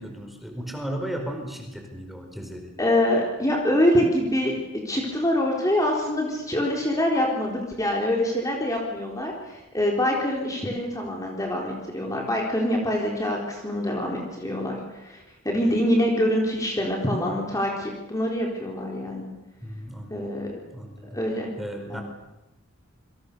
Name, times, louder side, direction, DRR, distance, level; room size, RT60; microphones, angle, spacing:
voice 1, 0.0-2.7 19.6-21.2 21.6-22.0, equal, ahead, 3 dB, 4.6 m, -35 dB
voice 2, 2.8-4.5 4.8-19.3 20.1-20.5 21.1-21.5 21.9-22.0, left 1 dB, 15° left, -1 dB, 3.9 m, -25 dB
28.5 x 25.0 x 6.9 m, 0.99 s
head